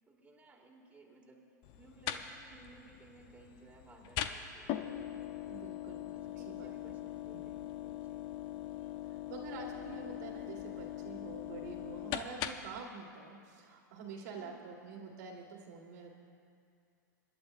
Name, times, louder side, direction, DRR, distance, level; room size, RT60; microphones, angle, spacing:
voice 1, 0.1-4.9 6.1-8.3 14.3-14.7, right 2 dB, 15° right, -2 dB, 2.2 m, -59 dB
sound 1, 1.6-12.8, left 11 dB, 45° left, 0.7 m, -42 dB
voice 2, 5.5-7.0 7.3-7.4 9.1-16.1, right 5 dB, 65° right, -1 dB, 1.9 m, -47 dB
26.0 x 11.5 x 2.6 m, 2.4 s
hypercardioid pair, 110°, 10 cm